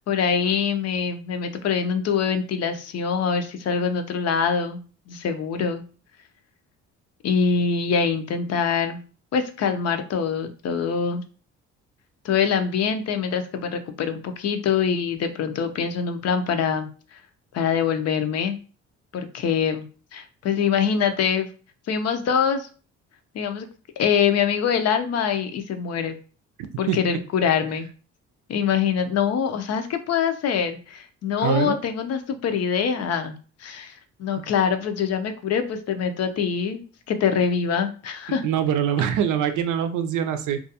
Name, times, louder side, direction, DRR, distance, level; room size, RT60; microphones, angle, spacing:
voice 1, 0.1-4.8 5.1-5.8 7.2-9.0 9.3-11.2 12.2-17.2 17.5-18.6 19.1-19.9 20.1-21.5 21.9-22.7 23.3-23.7 24.0-26.1 26.8-27.9 28.5-33.9 34.2-36.8 37.1-38.4, left 6 dB, 55° left, 8 dB, 0.5 m, -24 dB
voice 2, 31.4-31.8 38.4-40.6, right 9 dB, 80° right, 9 dB, 0.5 m, -23 dB
2.4 x 2.2 x 2.7 m, 0.38 s
cardioid pair, 90°, 30 cm